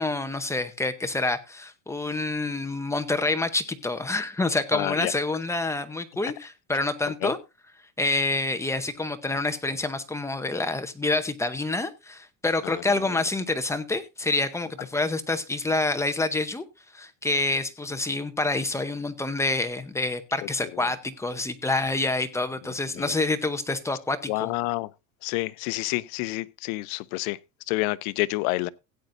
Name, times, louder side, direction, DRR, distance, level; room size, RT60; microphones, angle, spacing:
voice 1, 0.0-7.4 8.0-16.6 16.9-24.5, left 2 dB, 5° left, 0.8 m, -27 dB
voice 2, 4.7-5.1 7.2-7.3 12.6-13.2 20.7-20.9 22.6-23.1 24.3-24.9 25.2-27.4 27.7-28.7, left 21 dB, 70° left, 0.7 m, -29 dB
16.0 x 9.3 x 2.6 m
cardioid pair, 150°, 43 cm